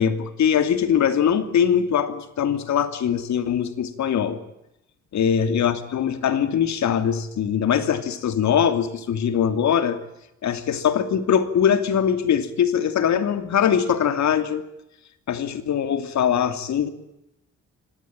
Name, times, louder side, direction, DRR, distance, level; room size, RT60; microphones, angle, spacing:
voice 1, 0.0-4.4 5.1-10.0 10.4-14.6 15.3-16.9, left 8 dB, 65° left, 11 dB, 2.8 m, -22 dB
24.5 x 18.0 x 8.8 m, 0.86 s
cardioid pair, 90°, 30 cm